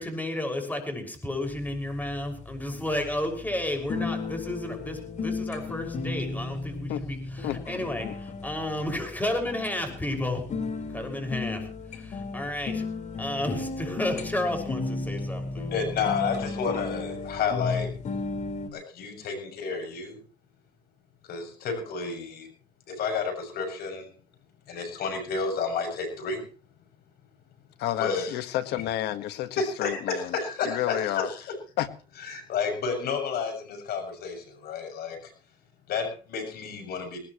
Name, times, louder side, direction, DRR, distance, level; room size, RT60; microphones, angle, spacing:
voice 1, 0.0-10.4 10.9-12.8 13.2-15.7, left 1 dB, 10° left, 4 dB, 6.1 m, -32 dB
sound 1, 1.4-18.7, left 3 dB, 45° left, 4.5 m, -34 dB
voice 2, 15.7-17.9 18.7-20.2 21.3-22.5 22.9-24.1 24.7-26.4 28.0-28.4 29.6-31.4 32.2-35.3 35.9-37.2, left 5 dB, 70° left, 4 dB, 7.1 m, -31 dB
voice 3, 27.8-30.4 30.6-31.3 31.8-31.9, left 12 dB, 85° left, 10 dB, 1.6 m, -30 dB
20.0 x 19.5 x 3.2 m, 0.38 s
cardioid pair, 110°, 17 cm